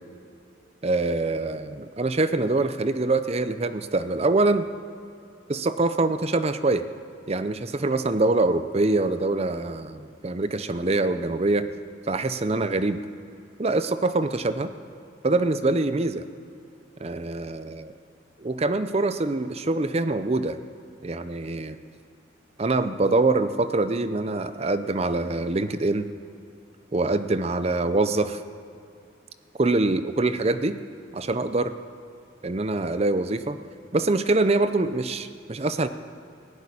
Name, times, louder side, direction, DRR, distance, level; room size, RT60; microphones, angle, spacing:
voice 1, 0.8-4.7 5.5-6.8 7.3-11.7 12.1-13.0 13.6-14.7 15.2-16.2 17.0-17.9 18.4-20.6 21.0-21.8 22.6-26.1 26.9-28.4 29.6-30.8 31.1-31.7 32.4-33.6 33.9-35.9, right 2 dB, 30° right, 11 dB, 0.6 m, -24 dB
16.5 x 6.9 x 9.9 m, 2.6 s
head